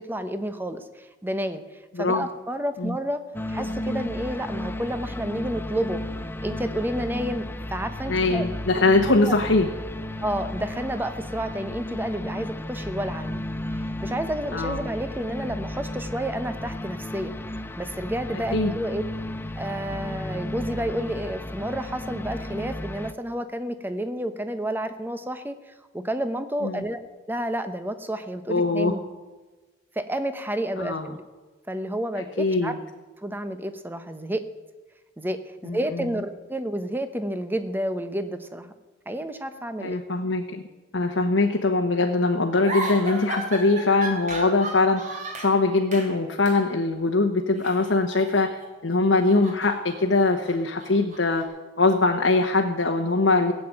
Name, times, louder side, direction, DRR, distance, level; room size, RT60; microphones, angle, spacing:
voice 1, 0.0-1.6 2.0-3.2 3.5-6.0 6.4-7.4 7.7-8.5 9.1-9.3 10.2-13.4 13.7-17.4 17.8-19.0 19.6-27.0 27.3-29.0 29.9-31.2 31.7-32.8 33.2-34.4 35.2-38.7 39.1-40.0, right 1 dB, 10° right, 9 dB, 0.9 m, -30 dB
sound 1, 3.3-23.1, left 1 dB, 10° left, 0.5 m, -33 dB
voice 2, 8.1-9.7 14.5-14.9 18.5-18.7 26.6-26.8 28.5-28.9 30.8-31.1 32.4-32.8 35.6-36.1 39.8-40.6 40.9-51.4 51.8-53.5, left 3 dB, 75° left, 1 dB, 1.2 m, -22 dB
sound 2, 42.6-45.6 45.9-46.2 46.4-46.6 47.6-48.7 49.0-51.4, right 1 dB, 40° right, 3.2 m, -35 dB
16.5 x 7.8 x 8.8 m, 1.3 s
head